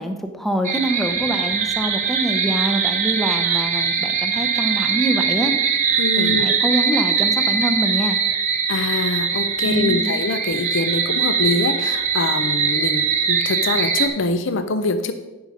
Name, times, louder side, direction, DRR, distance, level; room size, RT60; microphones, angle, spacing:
voice 1, 0.0-5.5 6.2-8.2 9.6-10.1, right 1 dB, ahead, 6 dB, 0.7 m, -25 dB
sound 1, 0.6-14.1, right 6 dB, 35° right, 0.9 m, -21 dB
voice 2, 6.0-6.5 8.7-15.1, left 3 dB, 60° left, 9 dB, 0.5 m, -24 dB
10.5 x 5.5 x 5.0 m, 1.1 s
head